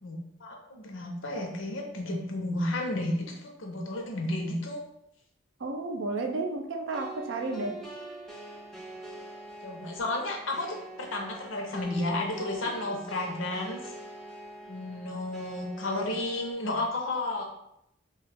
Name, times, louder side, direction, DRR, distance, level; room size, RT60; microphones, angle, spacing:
voice 1, 0.0-4.8 9.6-13.9 14.7-17.4, left 2 dB, 85° left, 1 dB, 0.7 m, -32 dB
voice 2, 5.6-7.7, right 3 dB, 70° right, 3 dB, 0.5 m, -32 dB
sound 1, 6.9-16.5, right 2 dB, ahead, 0.5 m, -44 dB
3.0 x 2.3 x 3.3 m, 0.80 s
head